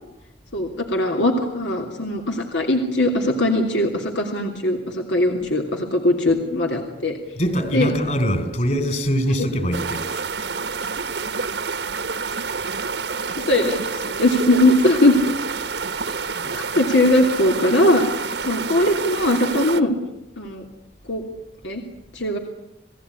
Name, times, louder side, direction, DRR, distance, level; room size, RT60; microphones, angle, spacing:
voice 1, 0.5-7.2 7.7-7.9 9.4-9.5 13.3-15.1 16.5-18.1 18.4-19.9 20.4-20.6 21.1-21.2 21.6-21.8 22.1-22.4, left 1 dB, 85° left, 3.1 m, -20 dB
voice 2, 7.4-10.3, equal, 45° left, 3.8 m, -23 dB
sound 1, 9.7-19.8, right 5 dB, 75° right, 1.5 m, -28 dB
29.5 x 18.0 x 9.8 m
head